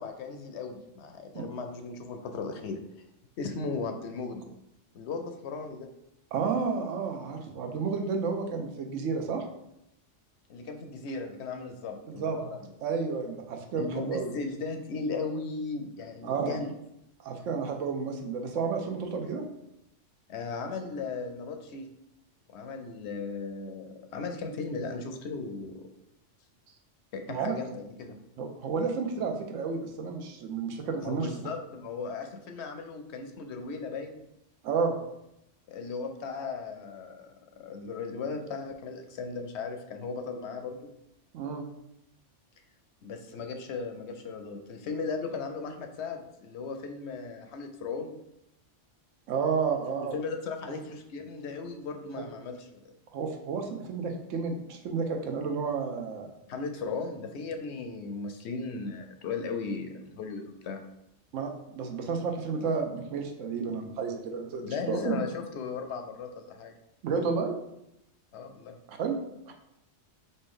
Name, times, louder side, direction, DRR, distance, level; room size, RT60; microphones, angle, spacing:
voice 1, 0.0-2.8 3.4-4.5 4.9-5.9 10.5-12.6 13.8-16.7 20.3-21.9 22.5-25.9 27.1-28.2 31.0-34.2 35.7-40.9 43.0-48.1 49.9-52.9 56.5-60.8 64.6-66.7 68.3-68.8, left 4 dB, 70° left, 5 dB, 0.8 m, -37 dB
voice 2, 6.3-9.4 12.0-12.5 12.8-14.3 16.2-16.6 17.2-19.4 27.3-27.6 28.4-31.5 34.6-35.0 41.3-41.6 49.3-50.1 50.7-50.8 52.2-52.3 53.1-56.3 61.3-65.2 67.0-67.5 68.9-69.2 69.5-69.6, right 5 dB, 85° right, 4 dB, 1.0 m, -31 dB
4.2 x 2.7 x 3.7 m, 0.81 s
omnidirectional pair, 1.3 m